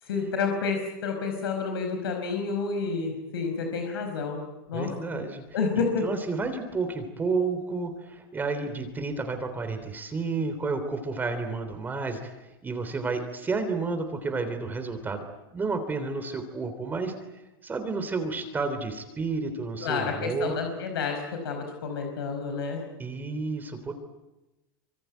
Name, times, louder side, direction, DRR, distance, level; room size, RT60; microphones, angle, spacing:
voice 1, 0.0-4.4 4.7-5.2 5.5-6.1 19.8-22.8, left 5 dB, 90° left, 4 dB, 5.0 m, -29 dB
voice 2, 4.7-5.4 5.7-12.3 12.6-15.3 15.5-17.2 17.6-20.6 23.0-23.9, right 4 dB, 15° right, 7 dB, 3.4 m, -31 dB
26.0 x 24.0 x 9.3 m, 1.0 s
supercardioid pair, 140°, 12 cm